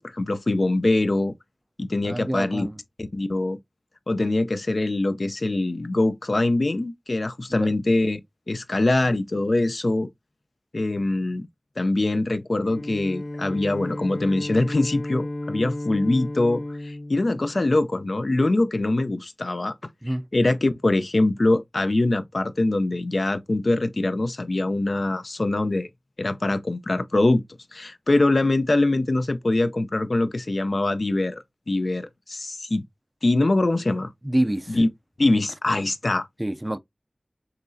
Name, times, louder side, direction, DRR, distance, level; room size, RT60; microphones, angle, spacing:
voice 1, 0.0-1.3 1.8-2.7 3.0-3.6 4.1-8.2 8.5-10.1 10.7-11.5 11.8-19.7 20.3-25.9 26.2-27.4 27.7-31.4 31.7-32.8 33.2-34.1 34.7-34.9 35.2-36.3, left 2 dB, 60° left, 0.5 m, -23 dB
voice 2, 2.0-2.8 7.5-7.7 20.0-20.3 34.2-34.8 36.4-36.8, right 1 dB, 20° right, 0.4 m, -27 dB
Bowed string instrument, 12.6-18.2, left 1 dB, 85° left, 1.8 m, -34 dB
5.8 x 3.1 x 2.6 m
wide cardioid pair, 55°, 0 cm